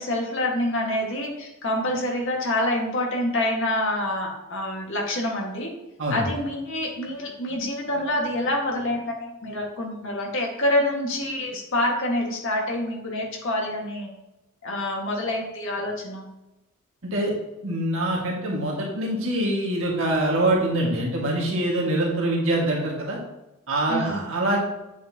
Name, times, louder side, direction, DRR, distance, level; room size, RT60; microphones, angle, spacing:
voice 1, 0.0-5.7 6.1-14.1 14.6-16.3 23.9-24.2, left 1 dB, 60° left, 0 dB, 1.8 m, -27 dB
voice 2, 6.0-6.4 17.0-17.3 17.6-23.2 23.7-24.6, right 1 dB, 65° right, -3 dB, 1.8 m, -24 dB
8.2 x 7.1 x 2.9 m, 0.98 s
head